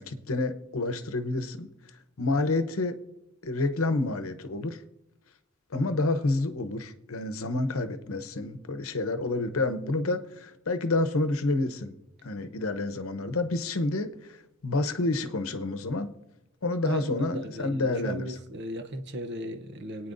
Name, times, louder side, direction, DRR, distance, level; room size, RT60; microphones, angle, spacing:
voice 1, 0.0-1.7 2.2-3.0 3.4-4.8 5.7-12.0 12.2-16.1 16.6-18.3, left 2 dB, 80° left, 9 dB, 0.8 m, -29 dB
voice 2, 16.8-20.1, right 1 dB, 55° right, 6 dB, 0.8 m, -37 dB
24.5 x 9.2 x 2.6 m, 0.89 s
head